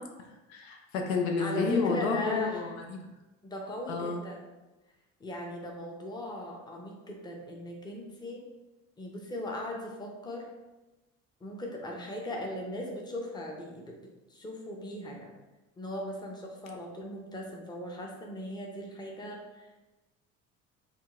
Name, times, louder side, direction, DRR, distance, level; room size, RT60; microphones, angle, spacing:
voice 1, 0.5-3.1 3.9-4.2, left 4 dB, 75° left, 2 dB, 0.5 m, -30 dB
voice 2, 1.4-2.7 3.4-4.5 5.2-8.4 9.0-10.5 11.4-13.9 14.3-15.3 15.8-19.7, left 1 dB, 10° left, 0 dB, 0.6 m, -38 dB
3.6 x 2.3 x 2.4 m, 1.1 s
figure-of-eight pair, 55°, 42 cm